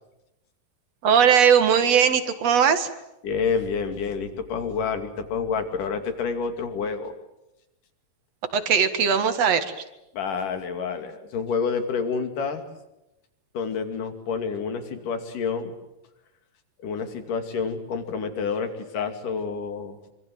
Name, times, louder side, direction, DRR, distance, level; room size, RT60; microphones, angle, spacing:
voice 1, 1.0-2.9 8.5-9.7, right 7 dB, 55° right, 10 dB, 2.7 m, -19 dB
voice 2, 3.2-7.1 10.1-12.6 13.5-15.7 16.8-20.0, left 5 dB, 70° left, 7 dB, 4.1 m, -28 dB
26.0 x 25.5 x 7.9 m, 0.90 s
omnidirectional pair, 4.0 m